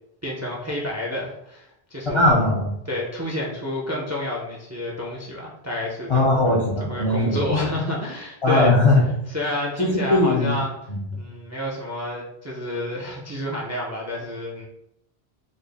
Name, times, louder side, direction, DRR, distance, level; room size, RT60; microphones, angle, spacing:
voice 1, 0.2-2.4 2.9-6.6 6.9-8.7 9.3-10.7 11.1-14.7, left 1 dB, 20° right, -3 dB, 0.4 m, -29 dB
voice 2, 2.0-2.7 6.1-7.7 8.4-9.0 9.8-10.5 10.9-11.0, left 2 dB, 40° left, -4 dB, 0.5 m, -19 dB
3.9 x 2.0 x 3.3 m, 0.79 s
omnidirectional pair, 1.1 m